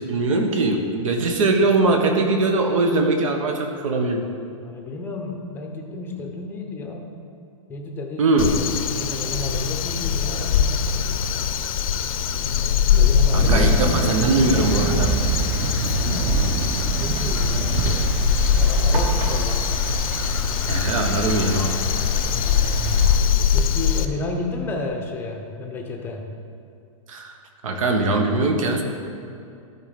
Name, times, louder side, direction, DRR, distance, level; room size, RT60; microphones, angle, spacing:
voice 1, 0.0-4.2 8.2-8.5 13.3-15.2 20.7-21.8 27.1-27.3 27.6-28.8, right 2 dB, 70° right, 4 dB, 1.2 m, -21 dB
voice 2, 4.6-7.0 7.7-10.9 12.9-13.9 15.9-18.1 18.5-19.6 22.3-22.9 23.5-26.3, left 2 dB, 10° left, 2 dB, 0.7 m, -32 dB
Crow, 8.4-24.0, left 8 dB, 80° left, 0.6 m, -22 dB
Thunder, 13.4-23.2, right 3 dB, 30° right, 1.0 m, -25 dB
12.5 x 4.6 x 5.1 m, 2.4 s
hypercardioid pair, 160°, 18 cm